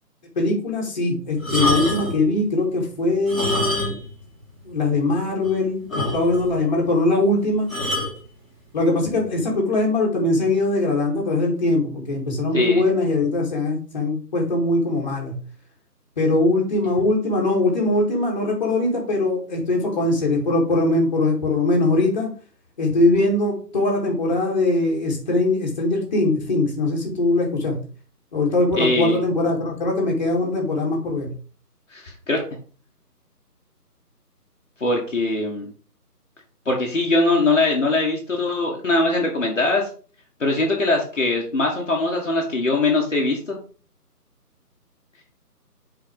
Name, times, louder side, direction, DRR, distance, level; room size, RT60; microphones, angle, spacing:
voice 1, 0.4-4.0 4.6-7.7 8.7-15.4 16.2-22.3 22.8-27.8 28.3-31.3, left 2 dB, 30° left, -1 dB, 2.3 m, -21 dB
sound 1, 1.4-2.2 3.2-4.2 4.4-4.5 5.1-5.2 5.4-5.5 5.9-6.5 7.7-8.2 9.0-9.2, left 1 dB, ahead, 1.3 m, -25 dB
voice 2, 28.7-29.2 31.9-32.4 34.8-35.7 36.7-39.9 40.4-43.6, left 2 dB, 50° left, -1 dB, 1.8 m, -21 dB
6.6 x 4.9 x 5.2 m, 0.40 s
figure-of-eight pair, 155°, 48 cm